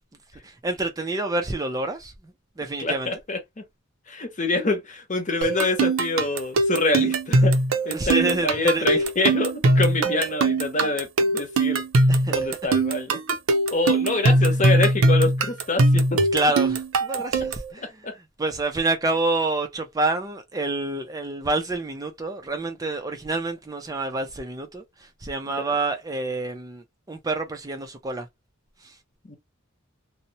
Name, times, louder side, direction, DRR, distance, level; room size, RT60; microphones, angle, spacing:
voice 1, 0.4-2.1 2.6-3.1 7.9-8.9 12.1-12.3 16.2-28.3 28.8-28.9, right 2 dB, 20° right, 0.4 m, -28 dB
voice 2, 2.8-3.6 4.1-7.6 7.8-11.8 12.3-13.4 13.7-16.2 17.8-18.1 29.2-29.4, left 2 dB, 40° left, 0.8 m, -26 dB
sound 1, 5.4-17.7, right 2 dB, 90° right, 0.5 m, -21 dB
2.7 x 2.0 x 2.6 m
head